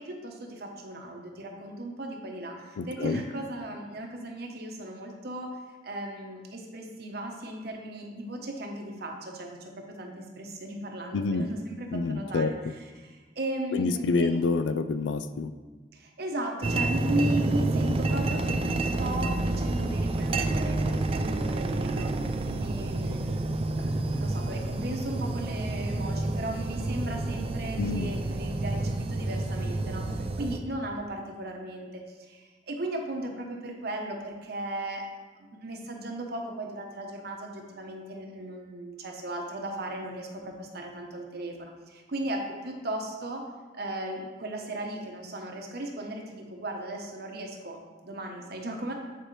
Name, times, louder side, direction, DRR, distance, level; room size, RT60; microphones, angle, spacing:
voice 1, 0.0-12.5 12.8-14.3 15.9-35.1 35.4-43.5 43.7-48.9, right 1 dB, 60° right, 2 dB, 1.0 m, -36 dB
voice 2, 2.8-3.2 11.1-11.5 11.9-12.5 13.7-15.5 27.8-28.1, left 4 dB, 85° left, 11 dB, 0.4 m, -27 dB
sound 1, 16.6-30.6, right 2 dB, 30° right, 0.4 m, -29 dB
9.1 x 4.6 x 3.2 m, 1.4 s
head